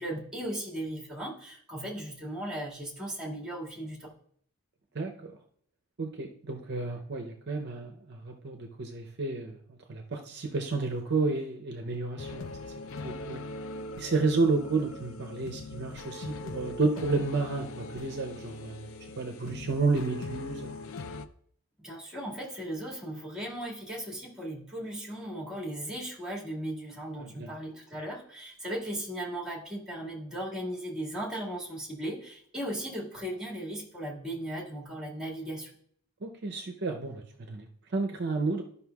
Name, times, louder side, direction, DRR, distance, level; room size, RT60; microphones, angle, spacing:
voice 1, 0.0-4.2 21.8-35.7, right 1 dB, 5° right, -4 dB, 1.9 m, -37 dB
voice 2, 4.9-5.4 6.0-9.6 9.9-12.6 13.0-13.4 14.0-18.9 19.2-20.7 27.2-27.5 36.2-37.7 37.9-38.6, right 3 dB, 50° right, 3 dB, 0.6 m, -31 dB
sound 1, 12.2-21.3, left 3 dB, 60° left, 0.5 m, -41 dB
13.0 x 5.5 x 2.3 m, 0.63 s
head